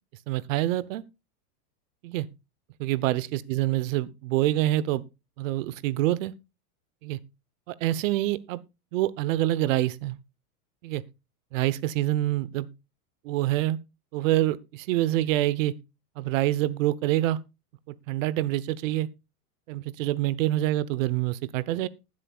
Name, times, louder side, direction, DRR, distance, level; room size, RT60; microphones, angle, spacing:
voice 1, 0.3-1.0 2.0-2.3 2.8-5.0 5.4-6.3 7.0-7.2 7.7-8.6 8.9-10.2 10.8-11.0 11.5-12.7 13.2-13.8 14.1-15.7 16.2-17.4 17.9-19.1 19.7-21.9, right 15 dB, 55° right, 0.9 m, -26 dB
20.0 x 7.6 x 2.4 m
supercardioid pair, 140°, 46 cm